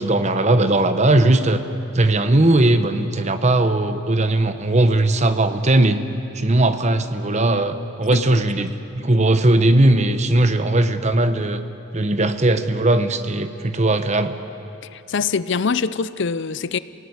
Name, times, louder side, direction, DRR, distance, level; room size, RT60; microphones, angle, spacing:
voice 1, 0.0-1.6 1.9-6.0 6.3-8.7 9.0-11.6 11.9-14.4, right 2 dB, 30° right, 10 dB, 1.0 m, -18 dB
voice 2, 8.1-8.4 14.9-16.8, left 5 dB, 55° left, 16 dB, 0.6 m, -24 dB
27.0 x 17.5 x 9.7 m, 2.8 s
head